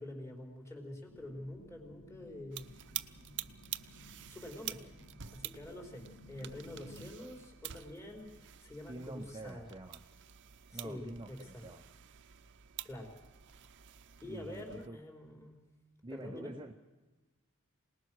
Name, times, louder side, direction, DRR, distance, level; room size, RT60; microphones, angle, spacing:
voice 1, 0.0-2.7 4.3-4.8 5.3-9.7 10.7-11.6 12.8-13.1 14.2-15.6 16.1-16.5, left 1 dB, 15° left, 2 dB, 4.6 m, -46 dB
sound 1, 1.1-7.1, left 1 dB, 80° left, 4.3 m, -57 dB
sound 2, 2.5-14.9, right 12 dB, 55° right, 0.8 m, -48 dB
voice 2, 8.9-10.0 10.7-11.9 14.3-15.0 16.0-16.7, right 2 dB, 20° right, 5 dB, 0.8 m, -47 dB
26.5 x 19.5 x 6.5 m, 1.2 s
head